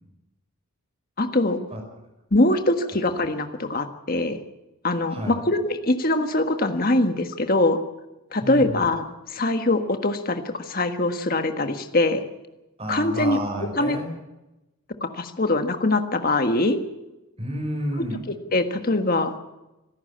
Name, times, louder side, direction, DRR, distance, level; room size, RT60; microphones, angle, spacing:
voice 1, 1.2-1.6 2.3-4.4 4.8-7.8 8.3-12.2 12.9-13.4 13.7-14.0 15.0-16.8 18.5-19.3, left 2 dB, 40° left, 7 dB, 1.5 m, -23 dB
voice 2, 5.1-5.4 8.4-8.8 12.8-14.1 17.4-18.3, right 1 dB, 25° right, 3 dB, 5.6 m, -30 dB
24.5 x 12.0 x 8.6 m, 0.99 s
head